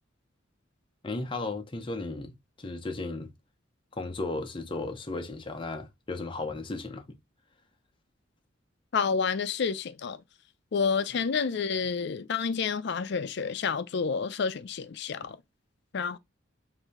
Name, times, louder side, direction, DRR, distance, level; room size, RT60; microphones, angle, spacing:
voice 1, 1.0-3.3 3.9-7.0, left 2 dB, 25° left, 0.7 m, -35 dB
voice 2, 8.9-10.2 10.7-15.4 15.9-16.2, left 5 dB, 60° left, 0.5 m, -29 dB
4.8 x 2.7 x 3.5 m
head